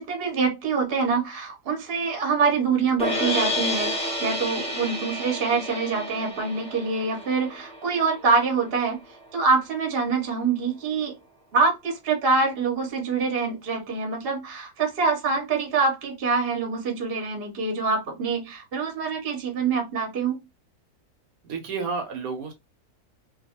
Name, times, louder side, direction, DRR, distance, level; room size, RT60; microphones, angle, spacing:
voice 1, 0.0-9.0 9.3-11.1 11.5-20.4, right 4 dB, 45° right, 0.9 m, -25 dB
sound 1, 3.0-9.2, left 1 dB, 5° left, 0.5 m, -30 dB
voice 2, 21.4-22.5, right 4 dB, 75° right, 1.1 m, -31 dB
2.6 x 2.3 x 2.8 m
omnidirectional pair, 1.6 m